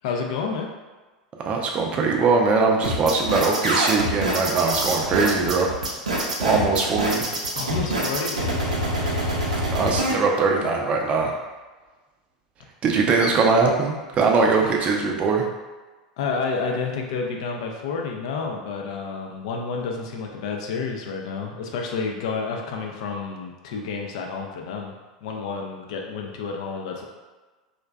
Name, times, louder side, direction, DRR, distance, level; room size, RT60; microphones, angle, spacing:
voice 1, 0.0-0.7 7.5-9.2 14.6-14.9 16.2-24.9 25.2-27.1, left 5 dB, 60° left, 1 dB, 0.4 m, -30 dB
voice 2, 1.5-5.7 6.4-7.2 9.7-11.3 12.8-15.5, right 4 dB, 30° right, 0 dB, 0.4 m, -21 dB
sound 1, 2.8-10.1, right 1 dB, 85° right, 0.5 m, -25 dB
2.5 x 2.1 x 2.2 m, 1.3 s
figure-of-eight pair, 85°, 4 cm